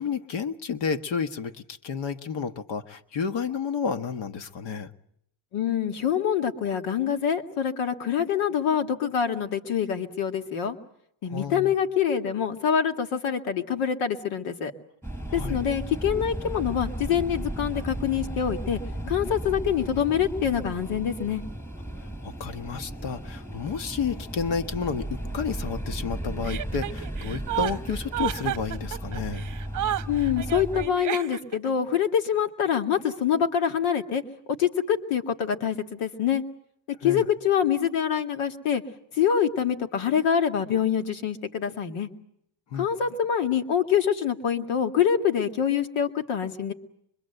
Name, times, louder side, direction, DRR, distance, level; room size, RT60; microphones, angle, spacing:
voice 1, 0.0-4.9 11.3-11.7 15.3-15.6 22.2-29.5 37.0-37.3 42.7-42.9, left 6 dB, 55° left, 11 dB, 1.5 m, -31 dB
voice 2, 5.5-10.8 11.2-14.7 15.3-18.8 19.1-21.4 30.1-34.2 34.6-36.4 36.9-38.8 39.2-42.1 42.8-46.7, left 8 dB, 80° left, 7 dB, 2.3 m, -25 dB
sound 1, 15.0-30.9, right 1 dB, 5° left, 4.1 m, -35 dB
Chuckle chortle, 26.4-31.7, right 12 dB, 40° right, 0.9 m, -31 dB
25.0 x 23.0 x 8.0 m, 0.72 s
cardioid pair, 110°, 50 cm